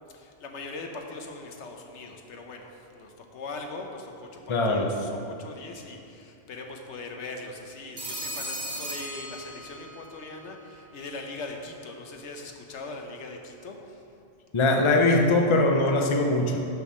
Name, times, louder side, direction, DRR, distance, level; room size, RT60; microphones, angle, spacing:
voice 1, 0.1-14.0, left 3 dB, 80° left, 3 dB, 1.1 m, -40 dB
voice 2, 4.5-4.9 14.5-16.6, left 2 dB, 30° left, 2 dB, 0.7 m, -21 dB
Telephone, 8.0-10.0, right 1 dB, 40° right, 1.5 m, -36 dB
6.9 x 6.1 x 6.2 m, 2.6 s
omnidirectional pair, 1.2 m